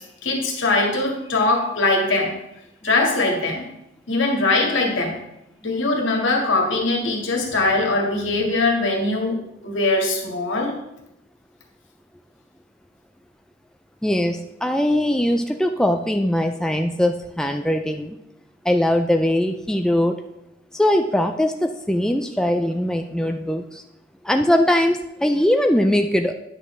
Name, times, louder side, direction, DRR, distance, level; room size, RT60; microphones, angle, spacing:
voice 1, 0.0-2.4 2.8-3.6 4.1-5.2 5.6-10.7, left 2 dB, 80° left, 0 dB, 1.9 m, -21 dB
voice 2, 14.0-18.2 18.6-20.2 20.7-23.8 24.2-26.3, left 1 dB, 5° left, 5 dB, 0.3 m, -21 dB
9.8 x 6.5 x 3.3 m, 0.85 s
head